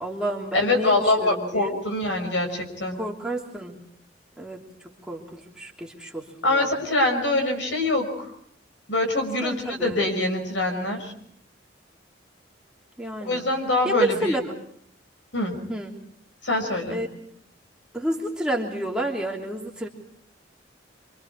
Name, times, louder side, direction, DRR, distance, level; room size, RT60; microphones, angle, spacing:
voice 1, 0.0-1.8 3.0-3.8 4.4-6.7 9.4-10.1 13.0-13.4 13.8-14.5 15.7-15.9 16.9-17.1 17.9-19.9, right 1 dB, 5° right, -2 dB, 3.1 m, -30 dB
voice 2, 0.5-3.0 6.4-8.3 8.9-11.1 13.2-14.4 15.3-15.6 16.4-17.0, left 2 dB, 75° left, 4 dB, 6.0 m, -24 dB
26.5 x 26.0 x 4.7 m, 0.66 s
head